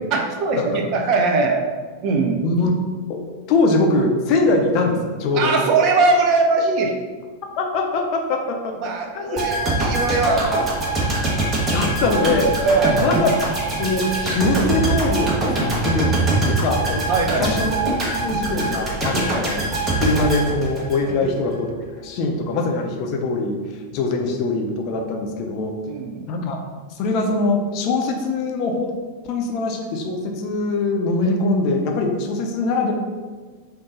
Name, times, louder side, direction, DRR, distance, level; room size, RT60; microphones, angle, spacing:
voice 1, 0.1-1.6 2.0-2.4 5.3-6.9 8.8-10.5 12.6-13.0 17.1-17.5 19.1-19.4 21.1-21.3 25.8-26.3, right 3 dB, 40° right, 2 dB, 0.6 m, -20 dB
voice 2, 3.5-5.6 7.6-8.7 9.1-9.4 11.7-12.8 13.0-13.3 13.8-16.1 16.5-17.0 17.4-17.7 18.2-19.6 20.0-21.7 22.0-23.6 23.9-25.7 26.3-26.6 26.9-28.9 29.2-32.9, left 3 dB, 40° left, 2 dB, 0.5 m, -22 dB
sound 1, 9.4-21.4 21.7-21.8, right 2 dB, 20° right, 1.1 m, -23 dB
3.7 x 2.7 x 3.7 m, 1.5 s
figure-of-eight pair, 90°, 0 cm